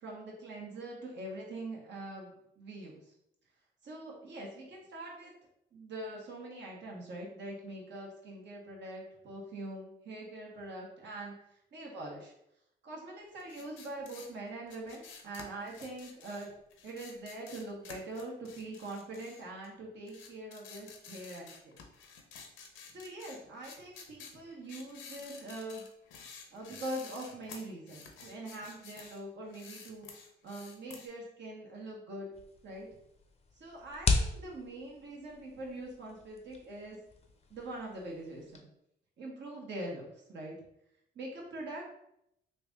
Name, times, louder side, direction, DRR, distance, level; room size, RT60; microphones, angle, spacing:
voice 1, 0.0-2.9 3.8-5.3 5.7-11.3 11.7-12.3 12.8-16.5 16.8-21.7 22.9-25.9 26.5-30.1 30.4-32.3 32.6-32.9 33.6-37.0 37.5-38.6 39.2-40.5 41.1-41.9, right 1 dB, 65° right, -2 dB, 1.3 m, -43 dB
sound 1, 13.4-19.7 20.1-29.2 29.5-31.1, left 5 dB, 80° left, 0.7 m, -51 dB
sound 2, 32.3-38.6, left 4 dB, 30° left, 0.6 m, -37 dB
3.3 x 2.7 x 3.5 m, 0.77 s
cardioid pair, 90°, 20 cm